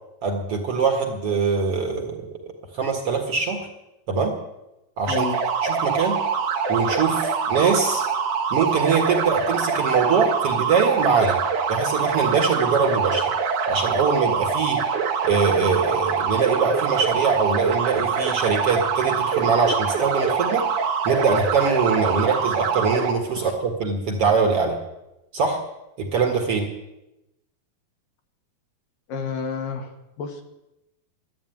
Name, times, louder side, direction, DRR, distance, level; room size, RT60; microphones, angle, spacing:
voice 1, 0.2-3.7 4.1-4.4 5.0-5.3 5.6-6.2 6.7-8.0 8.5-11.4 11.7-13.3 13.7-14.8 15.2-20.7 21.1-24.8 25.3-25.6 26.0-26.7, right 5 dB, 50° right, 2 dB, 2.2 m, -23 dB
voice 2, 5.1-5.4 22.2-22.3 23.3-23.5 29.1-30.4, left 5 dB, 70° left, 5 dB, 3.1 m, -31 dB
sound 1, 5.1-23.1, right 6 dB, 65° right, 2.6 m, -24 dB
12.5 x 11.5 x 9.2 m, 0.92 s
omnidirectional pair, 4.2 m